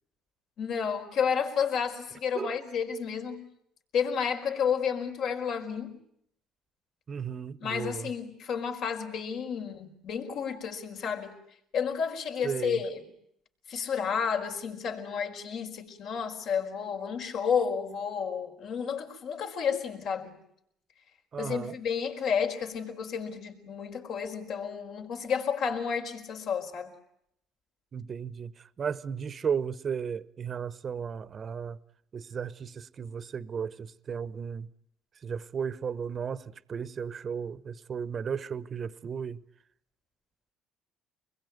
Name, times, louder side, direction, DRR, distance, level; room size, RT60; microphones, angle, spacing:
voice 1, 0.6-3.4 3.9-6.0 7.6-11.4 11.7-13.0 13.7-20.4 21.4-26.9, left 7 dB, 65° left, 4.8 m, -31 dB
voice 2, 7.1-8.1 12.4-12.8 21.3-21.7 27.9-31.8 32.1-34.7 35.2-39.4, right 7 dB, 40° right, 1.0 m, -35 dB
26.5 x 21.5 x 9.4 m
cardioid pair, 95°, 0 cm